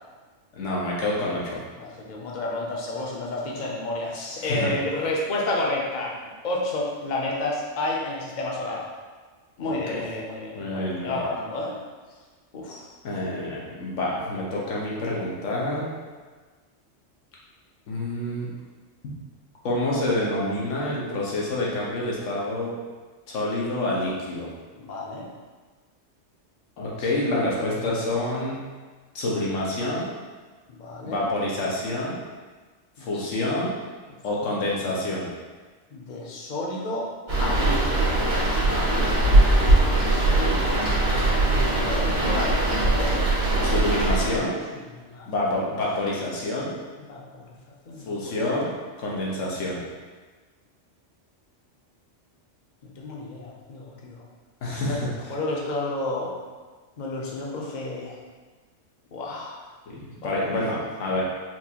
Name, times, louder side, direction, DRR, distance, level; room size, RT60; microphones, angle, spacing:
voice 1, 0.5-1.6 4.4-4.7 9.6-10.0 10.5-11.2 13.0-15.9 17.9-18.5 19.6-22.7 23.3-24.5 26.8-28.6 29.1-30.1 31.0-32.2 33.0-33.8 34.2-35.3 38.6-39.0 43.6-44.6 45.3-46.8 48.1-49.8 54.6-55.3 59.9-61.2, left 1 dB, 90° left, -4 dB, 1.2 m, -27 dB
voice 2, 1.8-6.2 6.4-8.9 9.6-11.8 12.5-12.9 24.7-25.3 26.8-27.0 27.2-28.0 30.7-31.3 33.0-33.3 34.5-34.6 35.9-37.1 37.4-38.3 39.8-40.9 41.1-43.2 44.7-45.3 47.0-47.5 47.9-48.4 52.8-54.2 54.8-55.0 55.3-56.3 57.0-58.2 59.1-59.6 60.1-60.8 61.1-61.2, left 2 dB, 50° left, -2 dB, 0.6 m, -31 dB
sound 1, 37.3-44.4, right 2 dB, 65° right, 1.5 m, -21 dB
4.3 x 2.4 x 2.8 m, 1.4 s
omnidirectional pair, 1.2 m